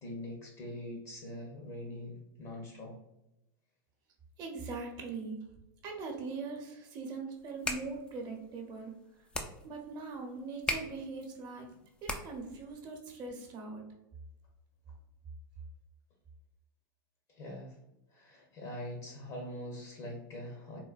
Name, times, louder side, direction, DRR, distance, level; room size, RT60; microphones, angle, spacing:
voice 1, 0.0-3.0 17.3-17.8 18.1-20.8, left 1 dB, 45° left, 0 dB, 0.8 m, -43 dB
voice 2, 4.4-5.4 5.8-8.9 9.6-11.7 12.0-13.8, right 4 dB, 35° right, 2 dB, 0.8 m, -41 dB
sound 1, 7.4-12.6, left 1 dB, 10° left, 0.4 m, -40 dB
3.8 x 2.2 x 2.4 m, 0.88 s
hypercardioid pair, 115°, 11 cm